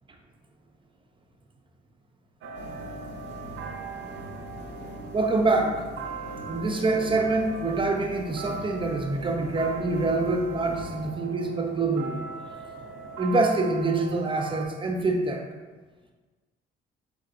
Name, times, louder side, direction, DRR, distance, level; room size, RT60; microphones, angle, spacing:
sound 1, 2.4-14.7, right 5 dB, 80° right, 0.5 m, -40 dB
sound 2, 2.5-11.1, left 1 dB, 60° left, 0.7 m, -43 dB
voice 1, 5.1-5.9 6.5-12.2 13.2-15.4, right 3 dB, 25° right, 3 dB, 0.6 m, -25 dB
4.5 x 3.9 x 2.5 m, 1.3 s
cardioid pair, 90°, 20 cm